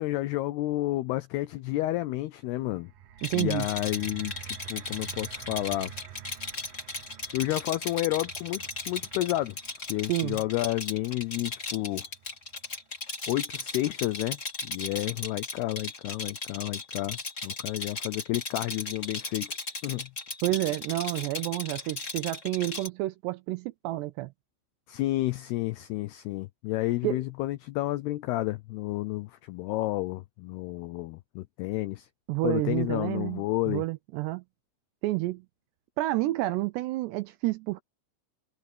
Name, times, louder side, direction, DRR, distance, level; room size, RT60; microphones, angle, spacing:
voice 1, 0.0-2.9 3.3-5.9 7.3-9.6 9.9-12.1 13.3-17.2 17.4-19.6 19.8-20.1 24.9-32.1 32.4-33.8, left 17 dB, 85° left, 2.3 m, -31 dB
sound 1, 2.6-12.8 13.6-13.7, right 11 dB, 65° right, 2.3 m, -49 dB
Rattle, 3.2-22.9, left 3 dB, 20° left, 2.2 m, -37 dB
voice 2, 3.2-3.7 10.1-10.4 20.4-24.3 27.0-27.2 32.3-34.4 35.0-35.5 36.0-37.8, right 17 dB, 80° right, 2.5 m, -29 dB
omnidirectional pair, 5.4 m